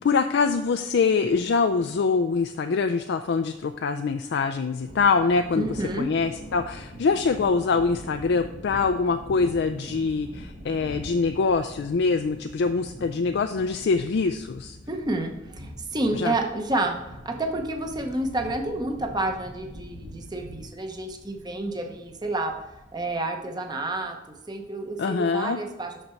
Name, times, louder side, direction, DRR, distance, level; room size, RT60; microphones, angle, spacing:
voice 1, 0.0-5.7 6.0-14.8 16.1-16.3 25.0-25.6, left 4 dB, 60° left, 6 dB, 0.4 m, -24 dB
Thunder, 4.7-23.1, equal, 70° right, 1.9 m, -43 dB
voice 2, 5.6-6.1 14.9-17.0 17.2-22.5 22.9-24.2 24.5-25.9, right 2 dB, 20° right, 3 dB, 0.8 m, -29 dB
6.6 x 5.9 x 4.4 m, 0.98 s
head